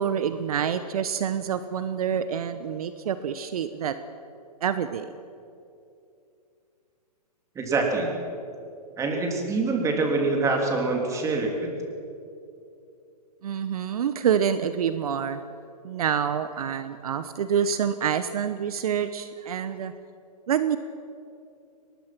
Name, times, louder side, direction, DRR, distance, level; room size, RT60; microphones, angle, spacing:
voice 1, 0.0-4.0 4.6-5.1 13.4-15.4 15.8-19.9 20.5-20.8, right 8 dB, 65° right, 12 dB, 1.0 m, -27 dB
voice 2, 7.5-8.1 9.0-11.7, right 3 dB, 15° right, 2 dB, 3.2 m, -25 dB
22.5 x 20.0 x 6.0 m, 2.6 s
hypercardioid pair, 135°, 21 cm